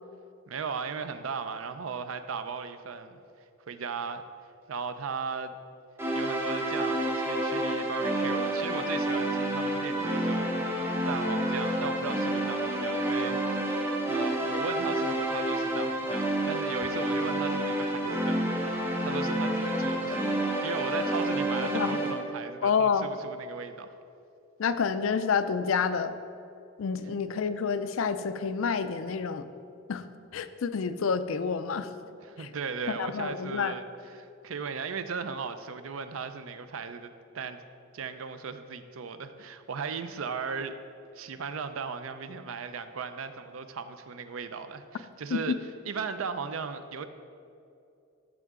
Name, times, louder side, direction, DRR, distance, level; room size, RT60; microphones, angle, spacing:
voice 1, 0.5-3.2 3.7-4.2 4.7-5.6 6.1-13.4 13.7-23.9 32.2-37.6 37.9-40.8 41.1-45.6 45.8-47.0, right 5 dB, 80° right, 10 dB, 0.5 m, -37 dB
sound 1, 6.0-22.1, right 1 dB, 10° right, 0.9 m, -29 dB
voice 2, 22.6-23.1 24.6-26.1 26.8-29.5 29.9-30.0 30.3-31.9 32.4-32.5 33.0-33.7 45.3-45.6, left 6 dB, 75° left, 11 dB, 0.4 m, -28 dB
13.5 x 4.8 x 3.6 m, 2.6 s
head